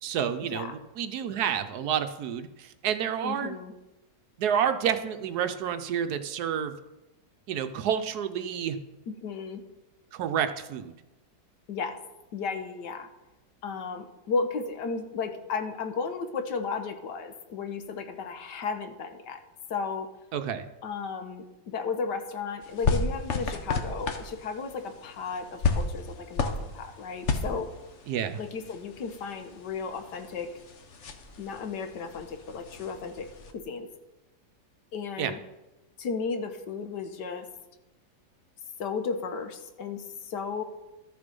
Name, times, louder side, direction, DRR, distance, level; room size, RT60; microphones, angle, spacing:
voice 1, 0.0-3.6 4.4-6.7 7.5-8.8 10.1-10.9 20.3-20.7 28.1-28.4 35.2-35.3, right 8 dB, 70° right, 9 dB, 1.1 m, -29 dB
voice 2, 3.2-3.7 9.1-9.6 11.7-12.0 12.3-13.1 13.6-19.4 19.7-20.1 20.8-27.7 28.4-30.5 31.4-33.3 33.5-33.9 34.9-35.4 36.0-37.4 38.8-40.6, left 5 dB, 75° left, 8 dB, 1.5 m, -34 dB
sound 1, 22.6-33.5, left 4 dB, 50° left, 1.1 m, -33 dB
13.0 x 6.8 x 5.3 m, 1.0 s
omnidirectional pair, 1.9 m